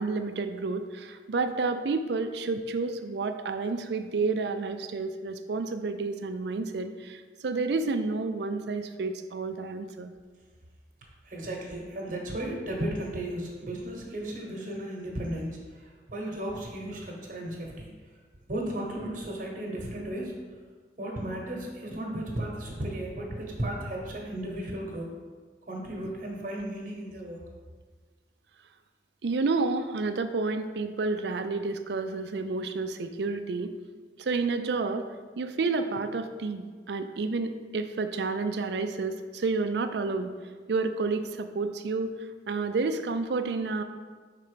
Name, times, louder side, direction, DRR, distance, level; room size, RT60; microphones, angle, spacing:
voice 1, 0.0-10.1 29.2-33.7 34.2-35.1 35.4-40.3 40.7-42.2 42.5-43.8, right 3 dB, 70° right, 9 dB, 0.4 m, -30 dB
voice 2, 11.2-17.9 18.5-20.4 21.0-25.1 25.7-27.5, right 1 dB, 50° right, 0 dB, 1.2 m, -35 dB
5.8 x 4.1 x 5.0 m, 1.5 s
head